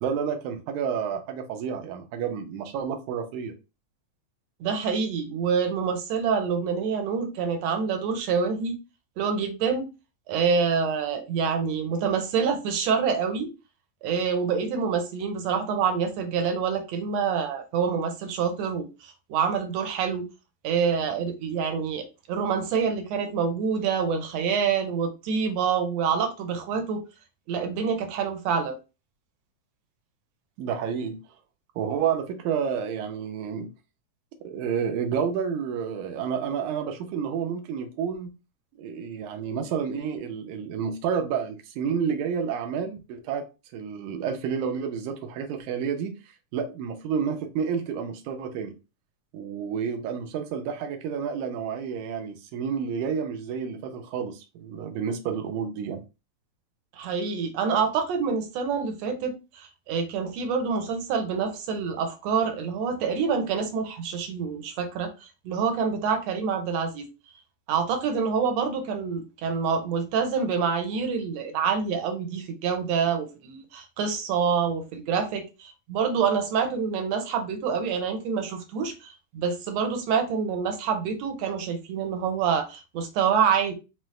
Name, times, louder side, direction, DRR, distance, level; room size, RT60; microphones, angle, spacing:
voice 1, 0.0-3.5 30.6-31.2 31.8-33.7 34.4-38.3 38.8-43.5 43.7-46.2 46.5-48.7 49.3-56.0, right 7 dB, 90° right, 2.1 m, -30 dB
voice 2, 4.6-8.8 9.2-9.9 10.3-13.5 14.0-20.3 20.6-27.0 27.5-28.7 56.9-67.1 67.7-83.7, right 6 dB, 75° right, 1.7 m, -26 dB
5.5 x 2.0 x 3.1 m
omnidirectional pair, 3.3 m